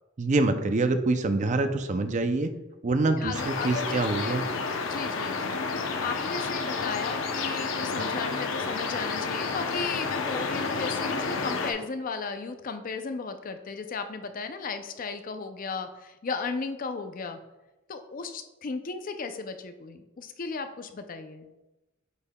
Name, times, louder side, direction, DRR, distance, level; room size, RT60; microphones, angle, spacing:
voice 1, 0.2-2.5 2.8-4.5, right 2 dB, 40° right, 9 dB, 0.4 m, -25 dB
voice 2, 3.1-4.4 4.8-5.5 6.0-17.4 17.9-21.5, left 4 dB, 45° left, 8 dB, 0.4 m, -35 dB
sound 1, 3.3-11.7, left 4 dB, 80° left, 0.7 m, -30 dB
8.1 x 5.4 x 2.2 m, 1.0 s
head